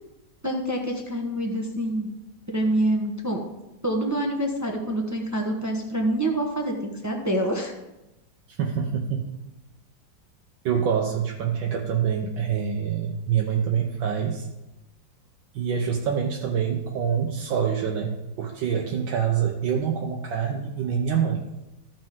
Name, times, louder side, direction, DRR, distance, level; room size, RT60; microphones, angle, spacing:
voice 1, 0.4-2.1 2.5-3.4 3.8-7.7, right 1 dB, 15° right, 1 dB, 0.6 m, -26 dB
voice 2, 8.5-9.2 10.6-14.5 15.5-21.4, right 7 dB, 85° right, 0 dB, 1.6 m, -26 dB
14.5 x 5.3 x 3.6 m, 0.96 s
omnidirectional pair, 2.0 m